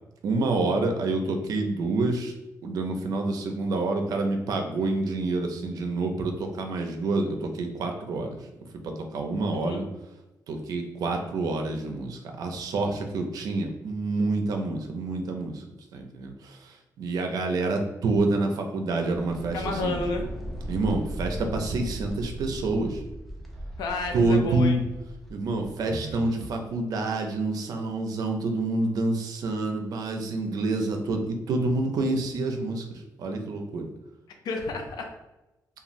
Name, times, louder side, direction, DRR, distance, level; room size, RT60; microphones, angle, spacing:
voice 1, 0.2-2.3 2.6-8.4 8.8-9.9 10.5-15.6 15.9-20.0 20.7-23.0 24.1-24.8 25.3-33.9, right 2 dB, 65° right, 4 dB, 0.4 m, -27 dB
voice 2, 9.5-9.9 19.5-20.2 23.8-24.8 34.4-35.1, left 3 dB, 75° left, 3 dB, 0.6 m, -31 dB
sound 1, 19.0-26.6, right 1 dB, ahead, 0.4 m, -38 dB
3.0 x 2.3 x 2.6 m, 1.0 s
wide cardioid pair, 165°, 7 cm